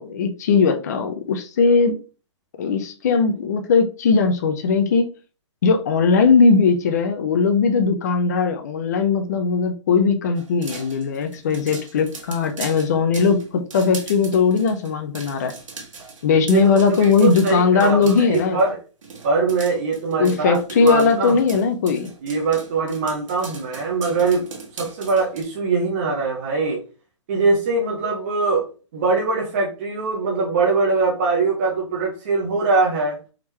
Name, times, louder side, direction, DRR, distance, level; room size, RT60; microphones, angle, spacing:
voice 1, 0.0-2.0 2.6-5.1 5.6-15.5 16.2-18.6 20.2-22.1, left 5 dB, 35° left, 6 dB, 0.4 m, -19 dB
sound 1, 10.3-18.7 19.0-25.4, right 4 dB, 85° right, 1.3 m, -39 dB
voice 2, 16.5-18.8 19.2-21.3 22.2-24.5 24.8-26.8 27.3-28.7 28.9-33.2, right 4 dB, 25° right, -2 dB, 0.7 m, -22 dB
3.6 x 3.0 x 3.2 m, 0.35 s
hypercardioid pair, 170°, 16 cm